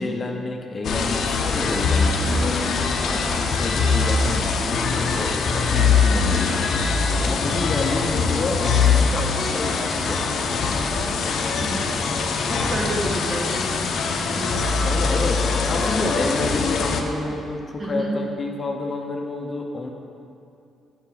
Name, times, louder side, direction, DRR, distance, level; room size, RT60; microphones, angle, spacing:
voice 1, 0.0-2.6 3.0-8.6 8.9-11.0 14.8-19.9, left 2 dB, 35° left, 2 dB, 0.7 m, -29 dB
sound 1, 0.8-17.0, left 4 dB, 65° left, 0.7 m, -22 dB
voice 2, 11.5-11.9 12.5-13.9 14.3-15.1 17.8-18.1, right 1 dB, 40° right, -3 dB, 1.7 m, -30 dB
7.7 x 7.3 x 3.9 m, 2.6 s
cardioid pair, 90°, 0 cm